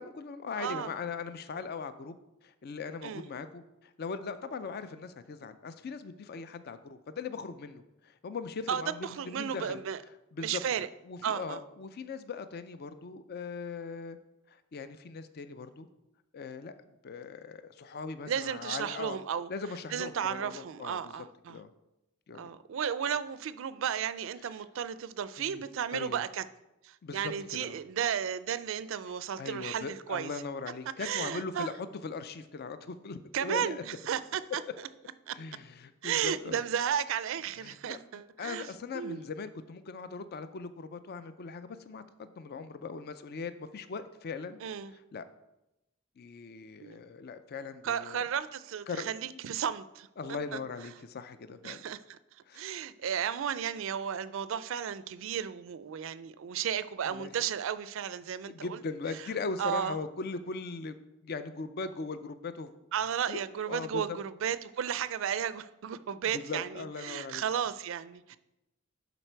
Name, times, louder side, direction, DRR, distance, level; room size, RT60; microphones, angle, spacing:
voice 1, 0.0-2.2 2.4-9.8 10.3-10.6 11.1-14.2 14.5-15.9 16.3-16.7 17.0-19.2 19.5-21.1 21.5-21.7 22.3-22.5 25.4-25.6 25.9-26.2 27.0-27.3 27.6-27.8 29.4-33.8 35.4-36.6 37.6-38.0 38.4-44.6 44.9-45.3 46.2-48.2 48.9-49.4 50.2-51.8 52.5-52.7 57.1-57.3 58.5-60.9 61.2-62.7 63.3-63.4 63.7-64.0 66.3-67.4, left 4 dB, 50° left, 11 dB, 0.4 m, -40 dB
voice 2, 0.5-0.9 3.0-3.3 8.7-10.0 10.4-10.9 11.2-11.6 18.3-19.5 19.9-21.6 22.4-26.4 26.8-30.3 31.0-31.7 33.3-34.6 35.3-35.4 36.0-39.2 44.6-44.9 46.8-47.0 47.8-50.1 50.5-50.6 51.6-52.2 52.5-58.8 59.2-59.3 59.6-60.0 62.9-68.4, right 8 dB, 70° right, 15 dB, 0.4 m, -34 dB
11.0 x 4.1 x 4.5 m, 0.92 s
head